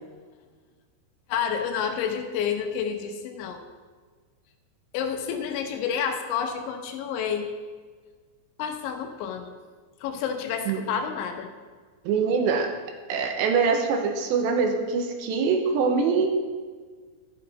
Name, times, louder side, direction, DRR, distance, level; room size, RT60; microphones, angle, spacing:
voice 1, 1.3-3.6 4.9-7.5 8.6-9.5 10.0-11.5, left 7 dB, 80° left, 5 dB, 3.1 m, -29 dB
voice 2, 12.1-12.7 13.1-16.3, right 5 dB, 80° right, 4 dB, 2.8 m, -23 dB
13.0 x 6.7 x 4.0 m, 1.5 s
omnidirectional pair, 5.4 m